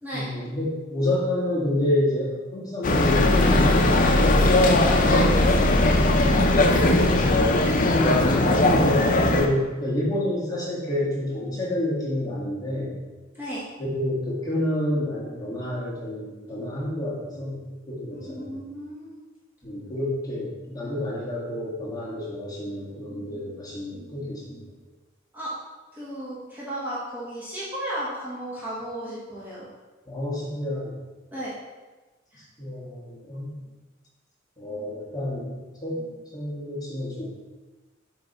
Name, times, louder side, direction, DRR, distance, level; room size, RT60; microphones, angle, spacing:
voice 1, 0.1-4.5 6.0-6.7 7.3-13.0 13.8-18.6 19.6-24.7 30.0-30.9 32.3-33.6 34.6-37.2, left 1 dB, 20° left, -7 dB, 1.6 m, -29 dB
sound 1, 2.8-9.5, left 2 dB, 40° left, 0.5 m, -19 dB
voice 2, 4.7-5.9 13.3-13.6 18.1-19.2 25.3-25.6 25.9-29.7 31.3-31.5 32.3-32.4, right 1 dB, 10° right, -9 dB, 1.2 m, -34 dB
7.2 x 3.2 x 4.1 m, 1.2 s
head